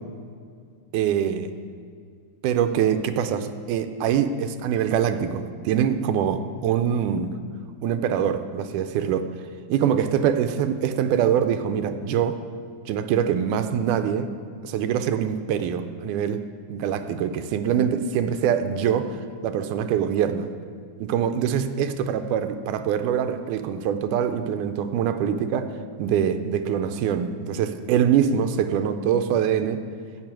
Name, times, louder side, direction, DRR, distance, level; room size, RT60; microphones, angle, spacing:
voice 1, 0.9-1.5 2.4-7.3 7.8-9.3 9.7-12.4 12.9-14.3 14.6-16.4 16.7-20.5 21.0-25.7 26.0-29.8, right 8 dB, 85° right, 9 dB, 2.1 m, -24 dB
10.5 x 6.9 x 8.9 m, 2.2 s
omnidirectional pair, 3.5 m